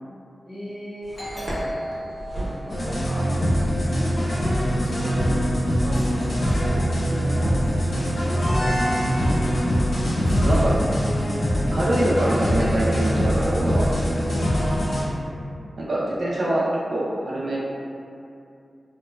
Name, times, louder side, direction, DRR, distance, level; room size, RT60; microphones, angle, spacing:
voice 1, 0.5-1.3 2.7-4.2 4.8-5.5 5.8-9.1 10.1-10.8 14.6-14.9, equal, 15° left, -11 dB, 0.7 m, -38 dB
sound 1, 1.0-14.5, right 1 dB, 25° right, 0.7 m, -39 dB
Doorbell, 1.1-4.5, equal, 85° left, 1.2 m, -36 dB
sound 2, 2.7-15.0, equal, 65° left, 0.5 m, -22 dB
voice 2, 10.4-10.7 11.7-13.9 15.8-17.7, right 1 dB, 70° right, -7 dB, 0.4 m, -24 dB
2.9 x 2.1 x 2.2 m, 2.5 s
wide cardioid pair, 110°, 0 cm